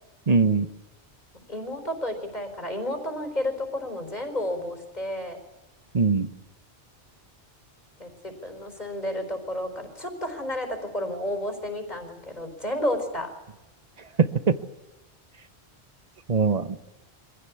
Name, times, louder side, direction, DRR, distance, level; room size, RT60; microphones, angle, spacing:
voice 1, 0.3-0.7 5.9-6.3 14.2-14.5 16.3-16.8, right 5 dB, 40° right, 10 dB, 1.2 m, -21 dB
voice 2, 1.5-5.4 8.0-13.3, left 1 dB, 40° left, 6 dB, 4.6 m, -31 dB
25.0 x 16.0 x 8.5 m, 1.0 s
omnidirectional pair, 1.1 m